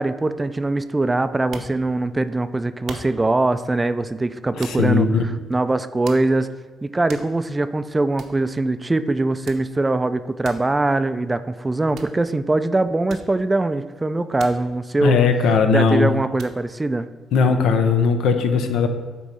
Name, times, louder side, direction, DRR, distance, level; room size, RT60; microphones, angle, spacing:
voice 1, 0.0-6.5 6.8-15.3 15.7-17.1, right 2 dB, 20° right, 12 dB, 0.3 m, -22 dB
sound 1, 1.3-2.2 2.9-3.4 4.6-5.1 5.5-5.6 6.1-6.6 6.9-7.7 7.9-8.0 8.2-8.4 9.5-9.8 10.4-10.7 12.0-12.3 13.1-13.7 14.4-14.7 15.0-15.8 16.4-16.7, right 5 dB, 70° right, 0.8 m, -40 dB
voice 2, 4.6-5.2 15.0-16.1 17.3-18.9, left 5 dB, 80° left, 7 dB, 0.7 m, -18 dB
8.3 x 3.1 x 5.4 m, 1.4 s
cardioid pair, 90°, 0 cm